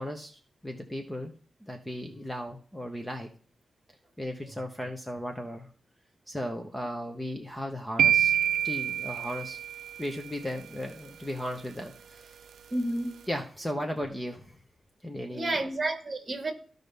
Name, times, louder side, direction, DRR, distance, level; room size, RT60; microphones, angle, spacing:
voice 1, 0.0-1.3 1.6-3.3 4.2-5.7 6.3-8.3 8.6-9.6 10.0-12.4 13.3-14.5 15.0-15.6, equal, 5° left, 0.8 m, -36 dB
sound 1, 8.0-10.1, right 10 dB, 80° right, 0.3 m, -26 dB
voice 2, 12.7-13.1 15.3-16.5, right 2 dB, 30° right, 1.7 m, -30 dB
14.0 x 5.3 x 3.4 m
wide cardioid pair, 160°, 0 cm